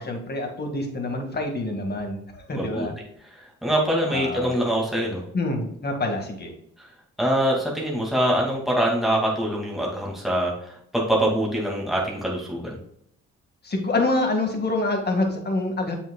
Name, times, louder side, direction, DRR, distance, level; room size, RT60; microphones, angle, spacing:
voice 1, 0.0-2.9 4.1-4.6 5.3-6.5 13.6-15.9, left 2 dB, 35° left, 3 dB, 2.0 m, -26 dB
voice 2, 2.5-2.9 3.3-5.2 6.8-6.9 7.2-12.8, equal, ahead, -3 dB, 2.3 m, -24 dB
7.2 x 6.1 x 2.3 m, 0.71 s
cardioid pair, 90°, 30 cm